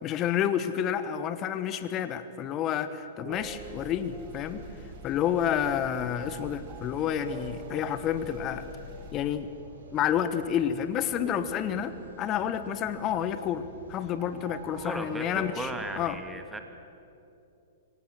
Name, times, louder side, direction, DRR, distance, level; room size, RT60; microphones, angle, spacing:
voice 1, 0.0-4.6 5.0-8.7 9.1-9.5 9.9-13.6 13.9-15.7 16.0-16.2, left 9 dB, 30° left, 12 dB, 1.1 m, -29 dB
sound 1, 0.9-15.7, right 7 dB, 30° right, 1.3 m, -49 dB
sound 2, 3.3-9.2, equal, 45° right, 6.3 m, -47 dB
sound 3, 4.2-16.1, right 2 dB, 75° right, 4.8 m, -51 dB
voice 2, 14.8-16.6, right 2 dB, 5° right, 6 dB, 1.6 m, -36 dB
25.0 x 18.0 x 7.5 m, 2.7 s
figure-of-eight pair, 105°, 0 cm